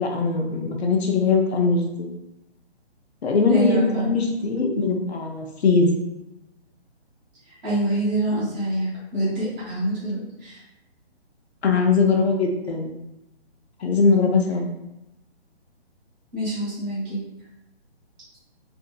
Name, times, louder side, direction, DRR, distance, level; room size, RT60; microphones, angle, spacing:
voice 1, 0.0-2.1 3.2-5.9 11.6-12.9 13.8-14.6, left 4 dB, 70° left, 1 dB, 0.7 m, -21 dB
voice 2, 3.5-4.1 7.4-10.6 16.3-17.2, right 1 dB, 10° right, -13 dB, 0.8 m, -26 dB
2.7 x 2.6 x 2.2 m, 0.91 s
hypercardioid pair, 165°, 33 cm